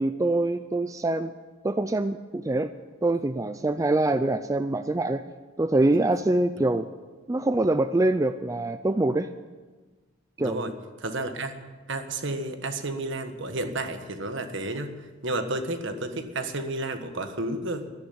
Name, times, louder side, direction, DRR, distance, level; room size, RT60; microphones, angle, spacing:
voice 1, 0.0-1.3 1.6-2.7 3.0-5.2 5.6-6.9 7.3-9.3 10.4-10.7, right 2 dB, 15° right, 10 dB, 0.4 m, -24 dB
voice 2, 10.4-10.7 11.0-11.6 11.9-17.8, right 2 dB, 60° right, 8 dB, 1.4 m, -31 dB
13.0 x 11.0 x 9.4 m, 1.3 s
head